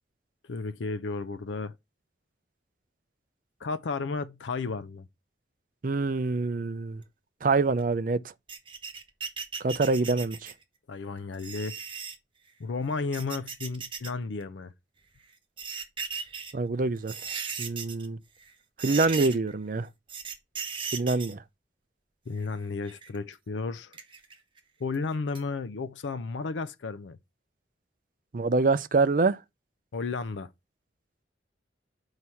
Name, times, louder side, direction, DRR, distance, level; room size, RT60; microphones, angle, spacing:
voice 1, 0.4-1.7 3.6-5.1 10.9-11.8 12.6-14.7 22.3-24.0 24.8-27.2 29.9-30.5, left 4 dB, 90° left, 0.5 m, -33 dB
voice 2, 5.8-7.0 7.4-8.2 9.6-10.5 16.5-17.1 17.6-18.2 18.8-19.9 20.9-21.4 28.3-29.4, right 3 dB, 45° right, 0.5 m, -25 dB
sound 1, 8.5-10.6 11.3-12.2 12.9-14.1 14.4-14.5 15.3-16.5 17.0-18.1 18.4-18.5 18.8-19.5 20.1-21.3 22.4-23.2 23.9-24.6 24.9-25.0 25.4-25.5, right 6 dB, 30° right, 1.2 m, -37 dB
6.0 x 4.8 x 5.5 m
head